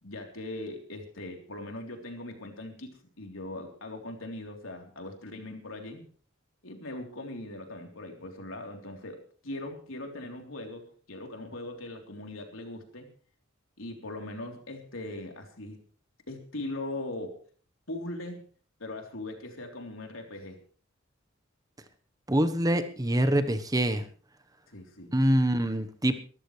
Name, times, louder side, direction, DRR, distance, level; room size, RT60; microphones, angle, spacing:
voice 1, 0.0-6.1 6.6-9.2 9.4-13.1 13.8-15.8 16.3-17.4 17.9-18.4 18.8-20.6 24.7-25.1, left 2 dB, 80° left, 3 dB, 3.5 m, -40 dB
voice 2, 22.3-24.0 25.1-26.1, right 1 dB, 20° right, 10 dB, 1.1 m, -25 dB
22.5 x 13.5 x 3.3 m, 0.43 s
head